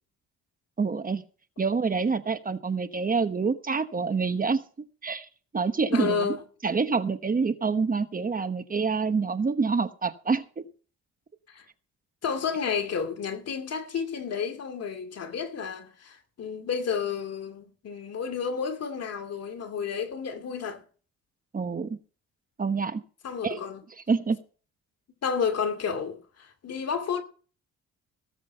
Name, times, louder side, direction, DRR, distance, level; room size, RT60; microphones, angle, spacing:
voice 1, 0.8-1.2 1.6-4.6 5.0-5.3 5.5-6.3 6.6-10.6 21.5-22.0 22.6-23.0 23.4-23.6 24.1-24.4, right 4 dB, 30° right, 1.1 m, -27 dB
voice 2, 5.9-6.4 11.5-11.7 12.2-20.8 23.2-23.8 25.2-27.2, left 6 dB, 55° left, 2.4 m, -31 dB
17.5 x 7.5 x 5.5 m
cardioid pair, 90°, 30 cm